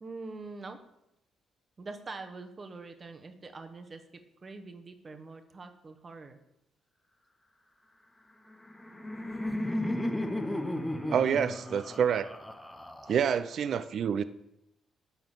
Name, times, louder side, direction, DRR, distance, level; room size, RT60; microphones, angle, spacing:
voice 1, 0.0-0.8 1.8-4.0 4.4-6.4, right 3 dB, 35° right, 6 dB, 1.0 m, -44 dB
Laughter, 8.5-13.5, left 1 dB, 10° left, 0.8 m, -34 dB
voice 2, 11.1-12.3 13.1-14.2, right 8 dB, 60° right, 14 dB, 0.4 m, -27 dB
9.6 x 3.8 x 7.3 m, 0.85 s
cardioid pair, 90°, 0 cm